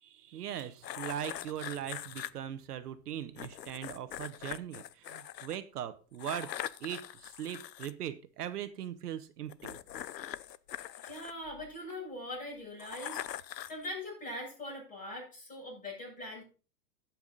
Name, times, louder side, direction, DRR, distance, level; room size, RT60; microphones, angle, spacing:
voice 1, 0.0-6.5 6.8-9.8, right 10 dB, 70° right, 11 dB, 1.0 m, -40 dB
sound 1, 0.8-2.3 3.4-5.6 6.2-7.9 9.5-11.9 12.8-13.9, left 11 dB, 90° left, 0.7 m, -42 dB
voice 2, 11.0-16.4, left 1 dB, 15° left, -3 dB, 7.1 m, -42 dB
15.5 x 5.8 x 3.9 m, 0.36 s
hypercardioid pair, 120°, 48 cm